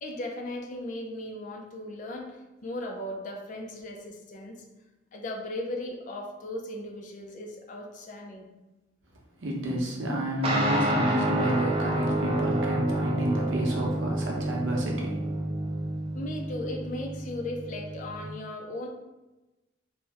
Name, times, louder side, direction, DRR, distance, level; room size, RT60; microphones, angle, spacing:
voice 1, 0.0-4.6 5.1-8.5 16.1-18.9, left 1 dB, 40° left, 2 dB, 0.4 m, -37 dB
voice 2, 9.4-15.2, right 1 dB, 85° right, -2 dB, 0.7 m, -30 dB
sound 1, 10.4-18.2, right 1 dB, 30° right, 0.3 m, -29 dB
2.9 x 2.0 x 3.4 m, 1.1 s
head